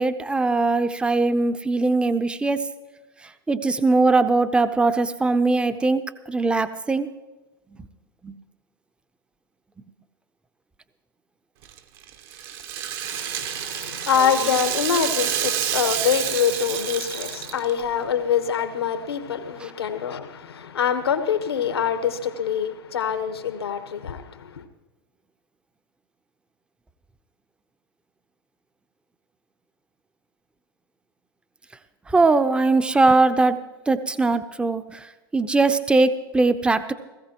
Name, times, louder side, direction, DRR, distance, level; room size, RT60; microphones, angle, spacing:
voice 1, 0.0-2.7 3.5-6.0 6.3-7.1 8.2-8.4 32.1-33.6 33.9-35.1 35.3-36.9, right 3 dB, 10° right, 0.6 m, -20 dB
Rattle (instrument), 11.6-17.8, right 10 dB, 55° right, 1.1 m, -28 dB
voice 2, 13.0-24.7, left 8 dB, 80° left, 1.2 m, -25 dB
17.5 x 15.5 x 3.0 m
hypercardioid pair, 95°, 13 cm